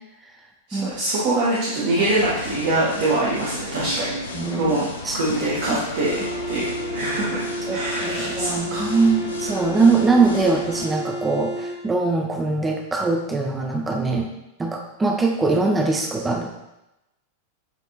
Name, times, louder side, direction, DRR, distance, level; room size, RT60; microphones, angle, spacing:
voice 1, 0.7-4.2 4.6-4.9 5.1-9.0, right 2 dB, 50° right, -7 dB, 0.9 m, -24 dB
sound 1, 1.9-10.9, left 2 dB, 75° left, 0.5 m, -33 dB
voice 2, 4.3-4.7 5.0-5.2 5.7-5.8 7.7-14.3 14.6-16.6, right 3 dB, 15° right, 2 dB, 0.4 m, -22 dB
sound 2, 6.0-11.8, right 1 dB, 55° left, 1.2 m, -31 dB
6.5 x 2.6 x 2.8 m, 0.92 s
figure-of-eight pair, 90°, 0 cm